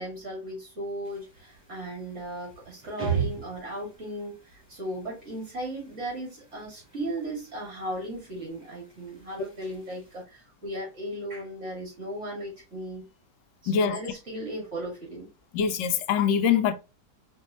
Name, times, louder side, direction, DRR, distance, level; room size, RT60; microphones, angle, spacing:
voice 1, 0.0-13.1 13.6-15.3, right 1 dB, 40° right, 2.6 m, -36 dB
sound 1, 1.0-10.2, right 7 dB, 5° right, 1.5 m, -39 dB
voice 2, 13.7-14.0 15.5-16.7, left 7 dB, 80° left, 1.3 m, -23 dB
4.5 x 2.9 x 2.5 m
omnidirectional pair, 1.9 m